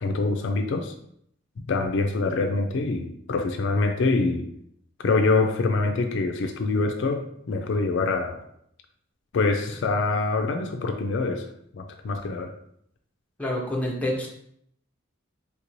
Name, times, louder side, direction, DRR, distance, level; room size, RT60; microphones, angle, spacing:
voice 1, 0.0-0.9 1.7-4.5 5.0-8.4 9.3-11.5 11.7-12.5, left 3 dB, 65° left, 5 dB, 0.3 m, -25 dB
voice 2, 13.4-14.3, left 1 dB, 5° left, -2 dB, 0.6 m, -27 dB
3.4 x 2.6 x 3.0 m, 0.70 s
head